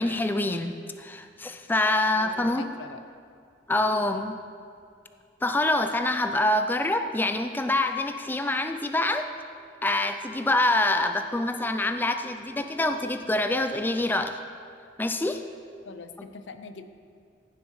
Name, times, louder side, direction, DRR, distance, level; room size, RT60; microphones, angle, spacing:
voice 1, 0.0-2.6 3.7-4.4 5.4-9.3 9.8-14.4 15.0-15.4, left 2 dB, 10° left, 7 dB, 0.3 m, -26 dB
voice 2, 2.1-3.0 15.8-16.9, left 4 dB, 80° left, 9 dB, 0.5 m, -43 dB
15.5 x 7.1 x 3.2 m, 2.3 s
head